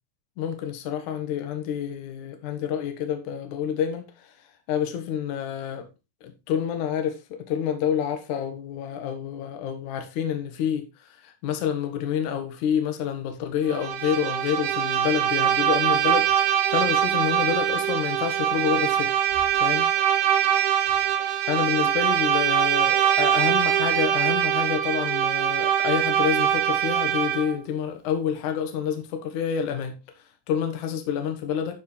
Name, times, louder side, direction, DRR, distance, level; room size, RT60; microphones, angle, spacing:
voice 1, 0.4-5.9 6.2-19.1 19.6-19.9 21.5-31.8, left 8 dB, 60° left, 2.6 m, -28 dB
Bowed string instrument, 13.7-27.6, right 10 dB, 70° right, 1.9 m, -23 dB
12.0 x 4.8 x 4.4 m
omnidirectional pair, 4.6 m